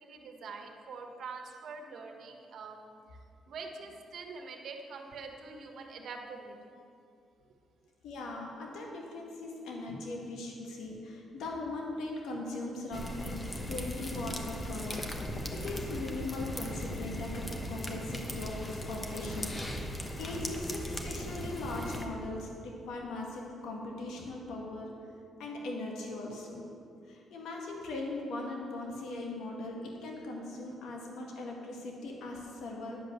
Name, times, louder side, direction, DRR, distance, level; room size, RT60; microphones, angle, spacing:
voice 1, 0.0-2.9 3.5-6.6, right 4 dB, 70° right, 3 dB, 1.3 m, -44 dB
voice 2, 8.0-13.4 13.7-19.9 20.2-24.9 25.4-26.6 27.1-33.0, left 2 dB, 80° left, -1 dB, 1.6 m, -39 dB
sound 1, 12.9-22.1, left 1 dB, 25° left, 1.1 m, -38 dB
10.0 x 5.3 x 8.0 m, 2.6 s
cardioid pair, 90°, 0 cm